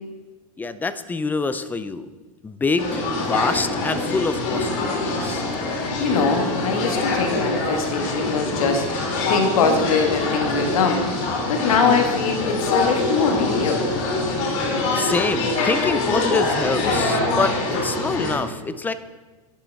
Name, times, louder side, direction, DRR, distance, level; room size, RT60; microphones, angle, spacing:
voice 1, 0.6-2.1 2.4-5.4 14.5-18.9, left 3 dB, 10° left, 13 dB, 0.4 m, -26 dB
sound 1, 2.8-18.4, left 2 dB, 60° left, 2.8 m, -24 dB
voice 2, 5.7-13.9, left 5 dB, 75° left, 4 dB, 1.5 m, -22 dB
10.5 x 7.3 x 3.5 m, 1.3 s
hypercardioid pair, 115°, 18 cm